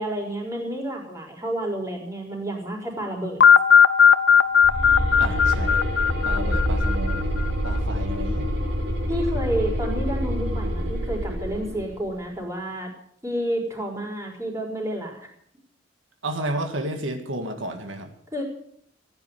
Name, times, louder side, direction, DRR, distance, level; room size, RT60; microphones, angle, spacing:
voice 1, 0.0-3.4 9.1-12.9 13.2-15.3 18.3-18.4, right 1 dB, 15° right, 0 dB, 4.3 m, -30 dB
sound 1, 3.4-7.4, left 7 dB, 65° left, 0.7 m, -17 dB
sound 2, 4.6-11.9, equal, 60° right, 3.8 m, -26 dB
voice 2, 5.2-5.8 6.2-7.2 7.6-8.5 16.2-18.1, right 1 dB, 85° right, 5 dB, 1.8 m, -31 dB
15.0 x 9.8 x 8.0 m, 0.66 s
head